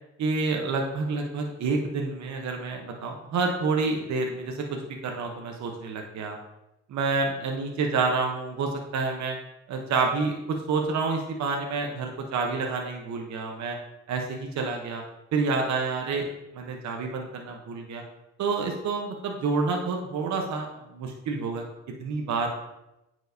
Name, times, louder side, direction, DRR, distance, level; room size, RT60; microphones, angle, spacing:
voice 1, 0.2-6.4 6.9-9.4 9.7-13.8 14.1-15.0 15.3-16.3 16.5-18.0 18.4-21.6 22.0-22.5, right 4 dB, 65° right, 2 dB, 0.9 m, -28 dB
9.2 x 4.7 x 2.7 m, 0.93 s
cardioid pair, 90°, 30 cm